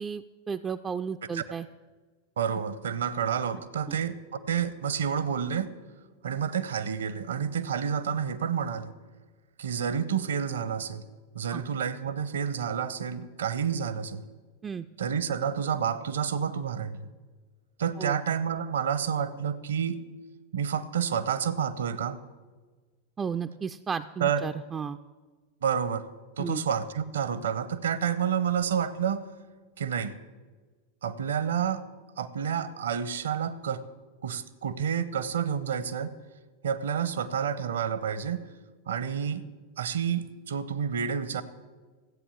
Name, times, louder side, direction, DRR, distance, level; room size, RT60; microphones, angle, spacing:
voice 1, 0.0-1.7 3.9-4.0 11.5-11.6 14.6-14.9 18.0-18.2 23.2-25.0 26.4-26.6, right 6 dB, 20° right, 8 dB, 0.3 m, -33 dB
voice 2, 2.4-4.1 4.5-5.7 6.2-8.9 9.6-11.0 11.3-14.2 15.0-17.1 17.8-20.0 20.5-22.2 24.2-24.4 25.6-26.0 26.4-29.3 29.8-30.2 31.0-31.8 32.2-33.8 34.2-36.1 36.6-38.4 38.9-39.4 39.8-41.4, right 7 dB, 65° right, 15 dB, 0.7 m, -29 dB
14.0 x 8.4 x 7.1 m, 1.4 s
figure-of-eight pair, 90°, 0 cm